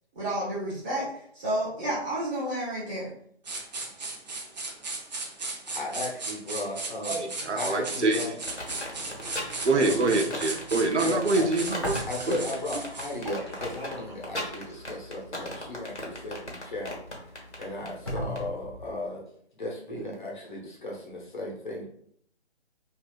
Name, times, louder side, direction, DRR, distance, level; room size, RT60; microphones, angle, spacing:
voice 1, 0.1-3.1, right 1 dB, 15° right, -9 dB, 1.2 m, -31 dB
sound 1, 3.5-13.2, right 3 dB, 40° right, 0.6 m, -36 dB
voice 2, 5.7-7.3 7.6-8.3 9.7-10.2 11.0-11.5 12.1-19.3 19.5-21.9, left 2 dB, 45° left, -2 dB, 0.9 m, -36 dB
voice 3, 7.1-8.2 9.6-11.9 12.3-12.4, right 3 dB, 90° right, 4 dB, 0.6 m, -25 dB
sound 2, 8.4-18.4, left 1 dB, 85° left, 1.1 m, -37 dB
sound 3, 11.8-12.6 12.9-16.9 17.4-17.5 18.1-18.9, equal, 25° left, 0.4 m, -38 dB
3.3 x 2.7 x 2.3 m, 0.65 s
figure-of-eight pair, 145°, 34 cm